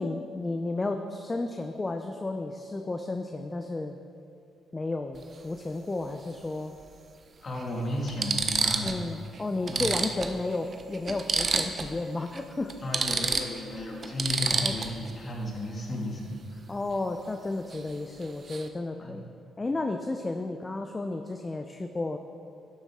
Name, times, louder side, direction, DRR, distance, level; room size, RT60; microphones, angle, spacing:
voice 1, 0.0-4.0 4.7-6.7 8.8-12.7 13.0-13.1 14.6-14.7 16.7-19.2 19.6-22.2, left 2 dB, 20° left, 5 dB, 0.5 m, -32 dB
sound 1, 5.1-5.3 6.8-6.9 7.6-7.7 8.1-9.0 9.3-9.4 9.7-12.0 12.3-12.4 12.7-15.1 17.7-17.9 18.2-18.7, right 4 dB, 40° right, 0.6 m, -29 dB
voice 2, 7.4-9.0 9.7-9.9 12.8-16.6 19.0-19.2, left 1 dB, 35° left, -2 dB, 2.0 m, -34 dB
11.5 x 7.3 x 3.6 m, 2.4 s
cardioid pair, 90°, 0 cm